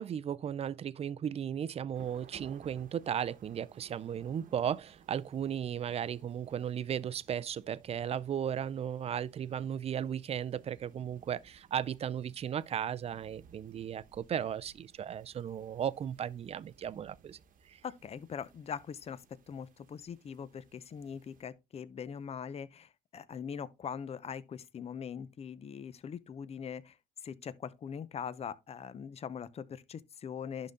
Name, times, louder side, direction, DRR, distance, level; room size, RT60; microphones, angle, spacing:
voice 1, 0.0-17.4 17.7-17.8, right 9 dB, 35° right, 0.4 m, -36 dB
sound 1, 1.9-21.4, right 7 dB, 55° right, 1.1 m, -61 dB
voice 2, 17.8-27.0 27.2-30.7, left 7 dB, 35° left, 0.7 m, -42 dB
11.0 x 3.9 x 3.7 m
cardioid pair, 110°, 17 cm